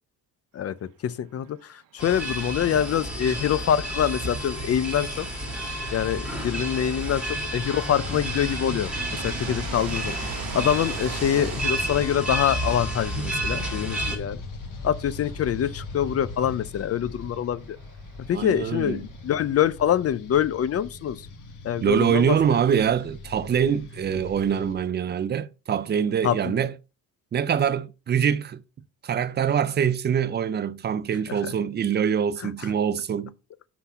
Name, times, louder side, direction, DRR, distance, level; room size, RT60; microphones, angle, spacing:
voice 1, 1.0-5.3 5.9-10.2 10.5-14.4 14.8-17.8 18.3-21.2 21.6-22.4 26.2-26.5 31.3-31.4, left 9 dB, 45° left, 0.4 m, -25 dB
sound 1, 2.0-14.2, right 1 dB, 5° right, 1.7 m, -31 dB
sound 2, 2.1-19.7, right 9 dB, 65° right, 0.9 m, -44 dB
sound 3, 7.9-24.7, left 3 dB, 60° left, 1.4 m, -40 dB
voice 2, 18.3-19.1 21.8-26.7 27.3-28.6 29.0-33.3, right 8 dB, 30° right, 0.4 m, -24 dB
6.0 x 5.8 x 5.4 m
cardioid pair, 175°, 36 cm